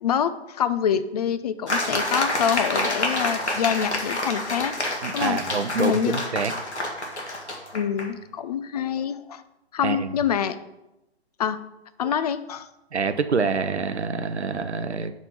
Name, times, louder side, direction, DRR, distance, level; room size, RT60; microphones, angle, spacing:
voice 1, 0.0-4.7 5.1-5.4 5.8-6.2 7.7-9.4 9.7-10.6 11.4-11.6 12.0-12.7, left 8 dB, 40° left, 13 dB, 0.4 m, -26 dB
sound 1, 1.7-8.1, left 1 dB, 85° left, 1.5 m, -28 dB
voice 2, 5.0-6.5 9.8-10.1 12.9-15.1, right 5 dB, 85° right, 11 dB, 0.6 m, -26 dB
5.2 x 5.2 x 5.8 m, 0.93 s
figure-of-eight pair, 120°, 33 cm